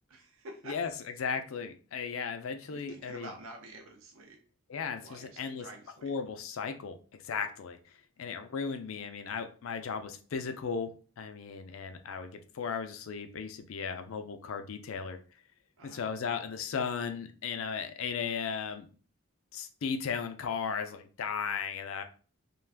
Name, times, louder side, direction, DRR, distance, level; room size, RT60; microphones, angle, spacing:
voice 1, 0.1-0.8 2.7-4.4 5.0-6.2 8.3-8.4 15.8-16.1, right 1 dB, 70° right, 3 dB, 0.5 m, -48 dB
voice 2, 1.2-3.3 4.7-5.7 6.0-7.0 7.2-7.8 8.2-15.2 15.9-18.9 19.5-22.0, left 6 dB, 70° left, 8 dB, 0.4 m, -36 dB
2.4 x 2.3 x 3.3 m, 0.38 s
head